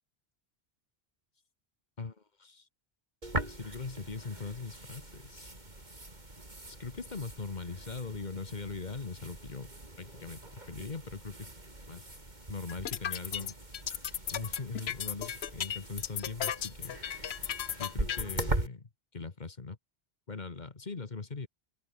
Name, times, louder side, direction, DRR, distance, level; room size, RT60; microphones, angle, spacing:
voice 1, 2.0-2.7 3.4-5.5 6.7-9.7 10.0-11.5 11.9-12.1 12.5-13.5 14.3-17.0 17.8-19.8 20.3-21.5, left 4 dB, 45° left, 1.6 m, -41 dB
sound 1, 3.2-18.7, right 1 dB, 45° right, 4.3 m, -41 dB
sound 2, 12.7-18.4, left 9 dB, 90° left, 1.1 m, -35 dB
open air
omnidirectional pair, 1.0 m